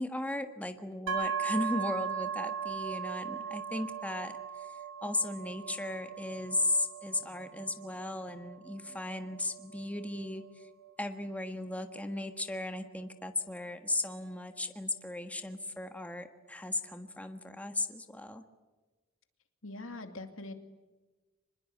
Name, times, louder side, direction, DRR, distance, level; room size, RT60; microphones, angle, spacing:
voice 1, 0.0-4.7 5.0-10.7 11.0-18.4, left 2 dB, 5° left, 6 dB, 1.5 m, -36 dB
sound 1, 1.1-14.8, right 6 dB, 75° right, 3.6 m, -39 dB
voice 2, 19.6-20.5, left 2 dB, 70° left, 7 dB, 2.5 m, -42 dB
26.0 x 21.0 x 8.6 m, 1.2 s
head